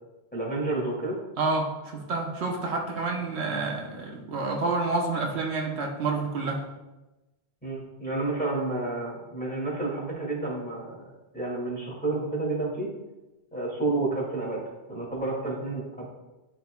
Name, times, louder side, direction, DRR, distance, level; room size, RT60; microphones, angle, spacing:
voice 1, 0.3-1.2 7.6-12.9 13.5-14.6 14.9-16.1, right 2 dB, 10° left, -6 dB, 2.2 m, -30 dB
voice 2, 1.4-6.6, right 3 dB, 75° right, 1 dB, 1.1 m, -29 dB
11.5 x 4.6 x 2.3 m, 1.1 s
omnidirectional pair, 1.1 m